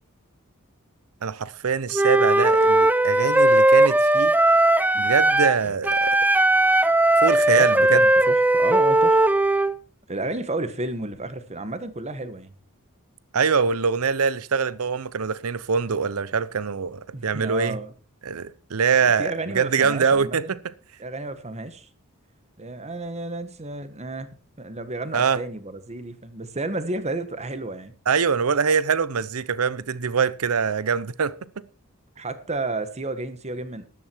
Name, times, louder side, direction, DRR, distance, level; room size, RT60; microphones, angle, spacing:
voice 1, 1.2-4.3 4.9-6.3 7.2-8.1 13.3-17.8 18.2-20.7 25.1-25.4 28.1-31.5, right 6 dB, 80° right, 0.7 m, -23 dB
Wind instrument woodwind instrument, 1.9-5.6 5.8-9.7, right 1 dB, 10° right, 0.5 m, -18 dB
voice 2, 5.4-5.7 7.5-9.2 10.1-12.5 17.1-17.9 19.2-20.6 21.0-21.9 22.6-24.3 24.6-27.9 32.2-33.8, right 2 dB, 30° right, 1.4 m, -32 dB
13.0 x 11.0 x 4.5 m
head